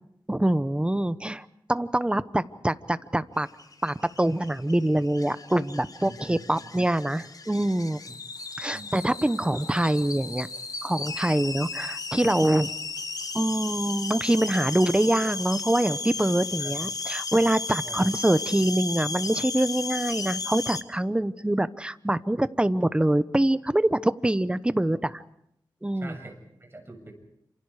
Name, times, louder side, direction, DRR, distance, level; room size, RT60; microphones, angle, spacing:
voice 1, 0.3-3.5 3.8-8.0 8.6-10.5 10.8-12.7 13.3-25.2 25.8-26.2, right 1 dB, 15° right, 14 dB, 1.0 m, -25 dB
sound 1, 3.5-20.8, left 3 dB, 50° left, 1.3 m, -35 dB
voice 2, 6.0-6.7 8.7-8.9 16.6-16.8 17.8-18.0 26.0-27.1, right 2 dB, 30° right, 4 dB, 7.3 m, -44 dB
29.0 x 27.0 x 5.0 m, 0.77 s
wide cardioid pair, 80°, 8 cm